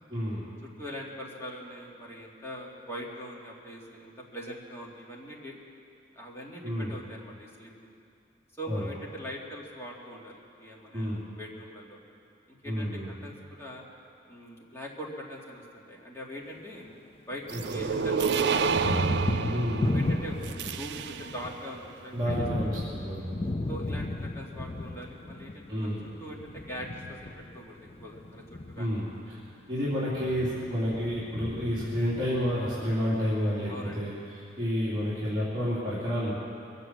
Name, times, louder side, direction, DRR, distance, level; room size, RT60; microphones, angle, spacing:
voice 1, 0.1-0.4 6.6-6.9 8.7-8.8 10.9-11.2 12.6-13.1 17.5-17.8 19.5-20.0 22.1-23.3 25.7-26.0 28.8-29.4 29.7-36.3, equal, 25° right, -11 dB, 3.0 m, -30 dB
voice 2, 0.6-5.6 6.2-7.7 8.6-12.0 12.5-13.8 14.3-16.8 17.3-18.9 19.8-22.5 23.7-25.9 26.2-27.3 27.5-29.0 29.7-30.0 33.7-34.1, equal, 15° left, -4 dB, 2.2 m, -42 dB
Thunder, 16.6-17.8 18.1-33.3, left 2 dB, 30° left, 0.5 m, -36 dB
sound 1, 17.5-21.5, right 5 dB, 65° right, 0.5 m, -29 dB
23.0 x 8.1 x 7.6 m, 2.5 s
head